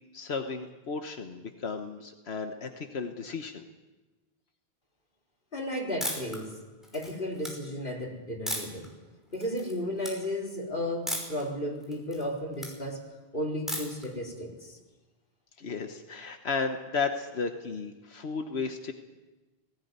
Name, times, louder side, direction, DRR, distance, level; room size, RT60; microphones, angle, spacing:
voice 1, 0.1-3.6 15.6-18.9, left 4 dB, 80° left, 5 dB, 1.4 m, -34 dB
voice 2, 5.5-6.5 6.9-8.9 9.3-13.0 13.3-14.8, left 1 dB, 55° left, -2 dB, 4.4 m, -34 dB
sound 1, 6.0-6.4 6.8-7.5 8.5-8.9 9.3-9.7 10.0-10.1 11.1-11.4 11.8-12.7 13.7-14.1, equal, ahead, 5.6 m, -34 dB
19.0 x 17.0 x 9.5 m, 1.1 s
omnidirectional pair, 1.1 m